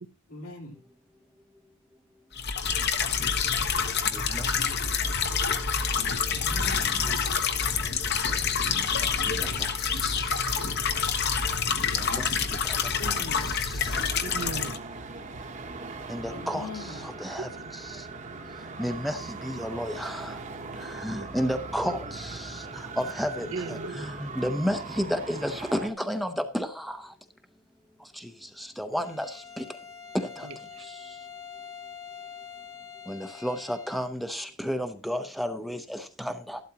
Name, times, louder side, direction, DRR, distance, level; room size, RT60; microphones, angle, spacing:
voice 1, 0.3-0.7 6.2-7.0 13.0-13.5 16.3-17.0 23.3-23.7, left 2 dB, 75° left, 3.8 m, -41 dB
sound 1, 2.4-14.8, left 6 dB, 50° left, 1.1 m, -27 dB
voice 2, 4.1-4.5 6.9-7.3 9.3-10.3 12.0-12.3 12.6-12.8 13.1-13.9 16.1-18.0 18.8-20.4 20.8-27.1 28.2-28.3 28.6-29.6 30.1-30.5 33.1-36.6, equal, ahead, 0.7 m, -32 dB
voice 3, 13.7-14.7 21.2-21.3 23.5-24.1 30.4-30.8, right 4 dB, 70° right, 0.8 m, -38 dB
Traffic noise roadway noise, 13.8-25.9, right 3 dB, 35° right, 1.1 m, -40 dB
Bowed string instrument, 28.9-34.2, left 7 dB, 15° left, 1.2 m, -45 dB
13.5 x 12.0 x 2.9 m
head